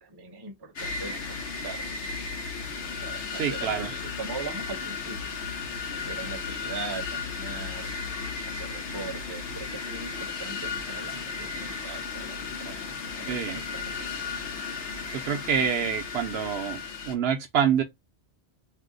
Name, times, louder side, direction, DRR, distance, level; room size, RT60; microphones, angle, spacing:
voice 1, 0.0-2.0 2.9-5.3 5.9-7.9 8.4-12.8 13.2-14.1, right 4 dB, 25° right, 0.6 m, -40 dB
sound 1, 0.8-17.2, left 5 dB, 90° left, 1.0 m, -35 dB
voice 2, 3.4-3.9 13.3-13.6 15.1-17.8, right 7 dB, 70° right, 0.8 m, -27 dB
2.7 x 2.1 x 3.7 m
omnidirectional pair, 1.1 m